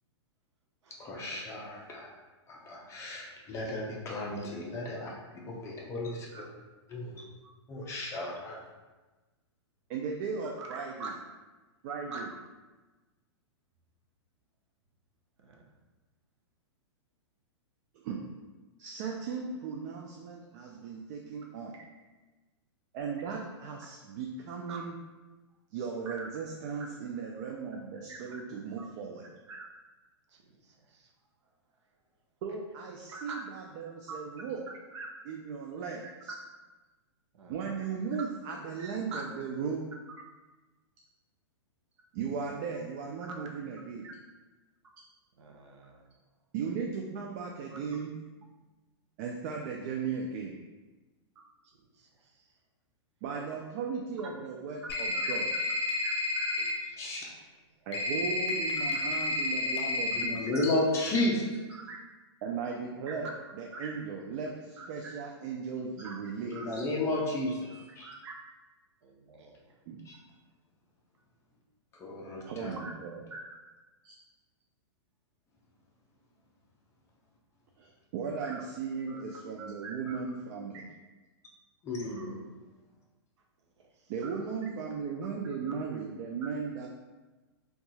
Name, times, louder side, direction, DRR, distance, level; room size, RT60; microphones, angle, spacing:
voice 1, 1.0-2.1 2.5-5.1 5.4-6.3 6.9-7.2 7.7-8.6 57.0-57.3 60.1-61.4 66.5-68.1 70.1-70.2 71.9-72.7 81.8-82.4, left 2 dB, 20° left, -2 dB, 0.5 m, -33 dB
voice 2, 9.9-11.1 11.8-12.3 18.0-18.2 18.8-21.8 22.9-24.9 25.7-29.3 32.4-34.6 35.3-36.3 37.5-39.9 42.1-44.1 46.5-48.1 49.2-50.6 53.2-55.5 57.9-60.5 62.4-66.6 69.9-70.0 72.5-73.2 74.0-74.1 77.8-80.8 84.1-86.9, right 5 dB, 40° right, 0 dB, 0.3 m, -37 dB
voice 3, 10.6-11.1 12.1-12.4 15.4-15.7 24.7-24.8 26.0-26.3 28.1-28.4 28.8-28.9 29.5-29.7 30.3-31.1 33.1-33.4 34.9-35.1 36.0-36.1 37.3-37.6 38.8-39.2 44.0-44.1 45.4-46.0 51.6-52.5 55.1-55.3 56.0-57.4 58.8-59.3 60.5-60.6 61.7-62.0 63.2-63.3 63.7-63.9 64.8-65.1 66.0-66.1 66.5-66.7 67.7-68.3 69.0-69.8 72.8-72.9 73.3-73.4 78.4-78.6 79.1-79.2 79.6-80.2 82.0-82.2 83.8-84.4 85.7-85.8, right 3 dB, 75° right, 0 dB, 0.7 m, -45 dB
sound 1, 54.9-56.7 57.9-60.3, left 2 dB, 60° left, 0.7 m, -31 dB
2.7 x 2.3 x 4.0 m, 1.2 s
hypercardioid pair, 145°, 15 cm